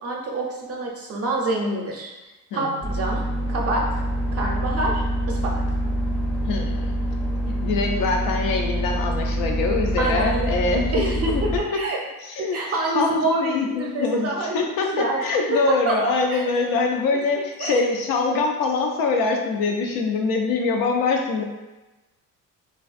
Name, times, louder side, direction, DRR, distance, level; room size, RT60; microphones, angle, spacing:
voice 1, 0.0-2.1 2.5-3.2 3.5-4.0 4.3-5.5 10.0-10.5 10.9-12.0 12.4-14.6 14.9-15.2 15.5-16.5 17.1-17.2 17.6-17.8, right 2 dB, 45° right, -1 dB, 0.5 m, -26 dB
voice 2, 2.5-3.0 6.5-7.0 7.6-11.0 12.2-12.6 12.9-13.1 13.4-21.4, left 4 dB, 75° left, 2 dB, 0.5 m, -24 dB
sound 1, 2.8-11.6, right 1 dB, 5° left, 0.4 m, -25 dB
2.5 x 2.3 x 2.4 m, 1.1 s
cardioid pair, 100°, 33 cm